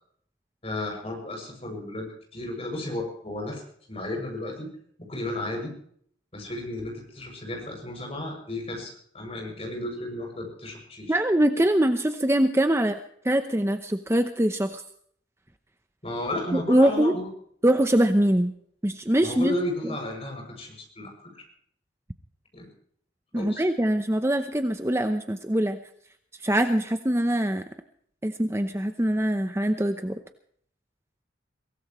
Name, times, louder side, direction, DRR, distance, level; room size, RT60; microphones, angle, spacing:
voice 1, 0.6-3.6 3.9-4.7 5.1-5.7 6.3-11.2 16.0-17.3 19.2-21.1 22.5-22.7 23.4-23.7, left 1 dB, 35° left, 2 dB, 7.1 m, -33 dB
voice 2, 11.1-13.0 13.2-14.8 16.5-17.1 17.6-18.5 18.8-19.5 19.8-19.9 23.3-25.8 26.4-27.6 28.2-30.2, right 1 dB, 15° right, 8 dB, 0.8 m, -23 dB
23.0 x 17.5 x 3.2 m, 0.62 s
head